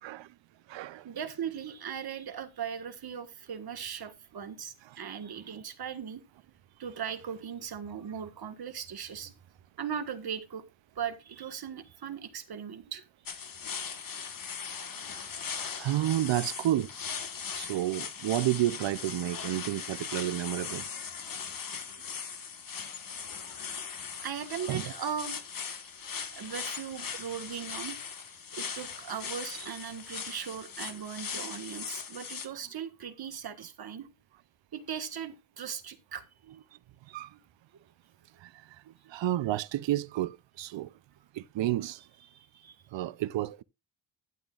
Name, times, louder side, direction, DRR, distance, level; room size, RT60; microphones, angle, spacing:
voice 1, 0.0-0.3 0.7-1.1 4.9-5.0 15.8-16.9 17.5-20.9 21.7-21.8 24.7-24.9 37.1-37.3 38.4-40.9 41.3-42.0 42.9-43.6, right 14 dB, 85° right, 0.6 m, -31 dB
voice 2, 1.0-6.2 6.8-9.3 9.8-10.6 10.9-13.0 24.2-25.4 26.3-28.1 28.5-34.1 34.7-36.2 37.3-37.4 42.3-42.8, right 8 dB, 55° right, 1.5 m, -38 dB
sound 1, 13.3-32.5, left 6 dB, 50° left, 1.5 m, -39 dB
12.5 x 10.5 x 2.4 m
wide cardioid pair, 140°, 43 cm